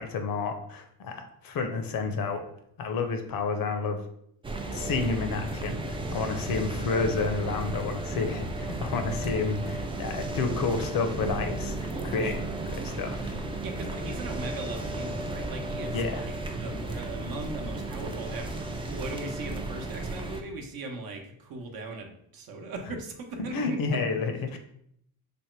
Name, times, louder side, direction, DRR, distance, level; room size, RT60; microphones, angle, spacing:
voice 1, 0.0-2.4 2.8-4.0 4.7-12.4 12.7-13.4 15.9-16.2 23.5-24.5, left 4 dB, 55° left, 6 dB, 0.7 m, -30 dB
sound 1, 4.4-20.4, right 2 dB, 15° right, 0.4 m, -34 dB
voice 2, 11.9-12.4 13.6-24.0 24.5-24.6, right 3 dB, 55° right, 3 dB, 0.8 m, -39 dB
3.4 x 2.1 x 4.3 m, 0.70 s
supercardioid pair, 80°, 42 cm